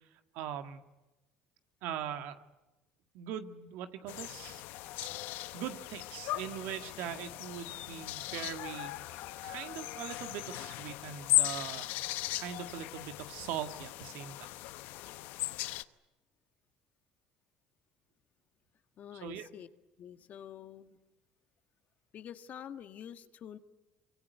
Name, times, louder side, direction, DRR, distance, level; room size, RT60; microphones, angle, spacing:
voice 1, 0.3-0.8 1.8-2.4 3.1-4.6 5.5-11.9 12.3-14.5 19.2-19.5, right 9 dB, 75° right, 8 dB, 1.8 m, -41 dB
sound 1, 4.1-15.8, left 17 dB, 75° left, 0.9 m, -37 dB
voice 2, 19.0-19.7 20.0-21.0 22.1-23.6, left 9 dB, 55° left, 9 dB, 1.6 m, -47 dB
24.5 x 24.0 x 9.4 m, 1.0 s
supercardioid pair, 75°, 3 cm